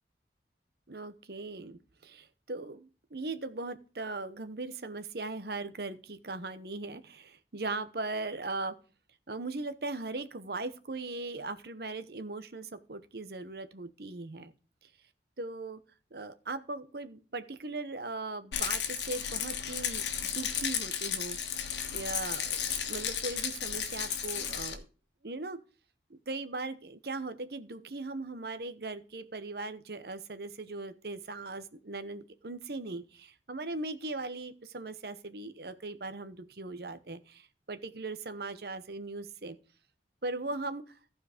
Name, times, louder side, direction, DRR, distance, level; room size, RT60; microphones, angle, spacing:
voice 1, 0.9-8.7 9.3-14.5 15.4-15.8 16.1-21.4 21.9-24.9 25.2-25.6 26.1-39.6 40.2-40.8, right 3 dB, 60° right, 12 dB, 0.9 m, -39 dB
Rattle, 18.5-24.8, left 8 dB, 80° left, 1.4 m, -34 dB
14.5 x 4.9 x 5.0 m, 0.36 s
head